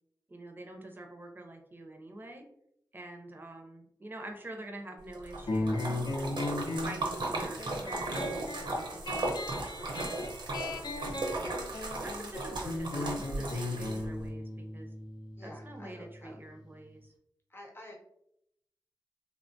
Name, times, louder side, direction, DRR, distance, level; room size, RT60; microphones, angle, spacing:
voice 1, 0.3-2.5 2.9-5.9 6.4-9.3 9.9-10.4 10.8-11.5 11.8-14.9 15.4-17.1, right 1 dB, 25° right, 3 dB, 0.5 m, -46 dB
Splash splatter, 5.1-14.3, right 2 dB, 80° right, 0.6 m, -36 dB
sound 1, 5.5-16.6, left 2 dB, 70° left, 0.5 m, -37 dB
voice 2, 15.4-16.4 17.5-17.9, left 1 dB, 30° left, -1 dB, 0.7 m, -50 dB
3.1 x 2.1 x 2.6 m, 0.76 s
wide cardioid pair, 100°, 8 cm